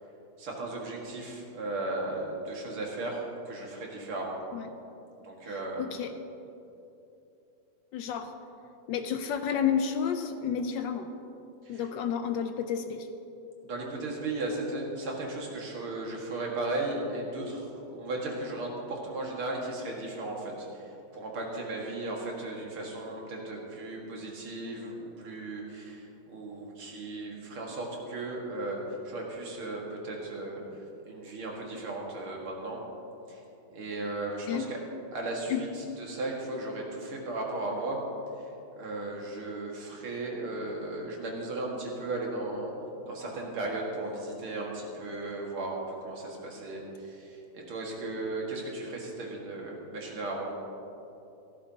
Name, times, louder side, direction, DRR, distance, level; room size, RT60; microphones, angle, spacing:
voice 1, 0.4-4.4 5.2-5.9 11.6-11.8 13.6-30.6 31.0-32.8 33.3-33.4 33.7-34.8 35.1-38.0 38.4-38.5 38.8-42.7 43.0-50.5, right 2 dB, 90° right, -2 dB, 2.8 m, -36 dB
voice 2, 5.4-6.1 7.9-8.3 8.9-11.1 11.7-13.1 34.5-34.6 35.5-35.6, left 8 dB, 75° left, 8 dB, 1.2 m, -31 dB
16.0 x 13.5 x 2.9 m, 2.9 s
omnidirectional pair, 2.3 m